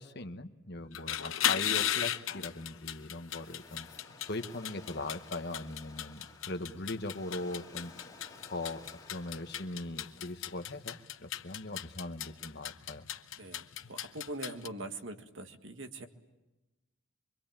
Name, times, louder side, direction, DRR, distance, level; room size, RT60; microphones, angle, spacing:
voice 1, 0.0-3.9 4.3-7.9 8.5-13.1, left 2 dB, 50° left, 8 dB, 1.3 m, -40 dB
sound 1, 0.8-14.7, left 11 dB, 65° left, 0.9 m, -37 dB
Waves surf, 2.5-10.7, left 3 dB, 20° left, 2.4 m, -56 dB
voice 2, 13.4-16.1, right 2 dB, 60° right, 6 dB, 1.9 m, -42 dB
25.5 x 24.5 x 8.9 m, 1.0 s
head